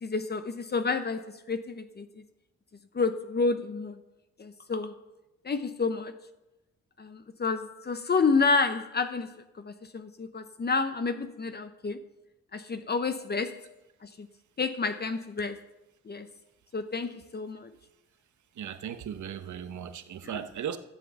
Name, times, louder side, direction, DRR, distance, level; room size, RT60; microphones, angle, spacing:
voice 1, 0.0-2.1 2.9-4.0 4.4-4.9 5.4-6.1 7.0-12.0 12.5-13.6 14.0-14.3 14.6-15.6 16.1-16.3 16.7-17.7, left 4 dB, 30° left, 0.8 m, -29 dB
voice 2, 18.5-20.8, right 9 dB, 65° right, 1.0 m, -37 dB
13.0 x 7.6 x 6.8 m
cardioid pair, 100°, 32 cm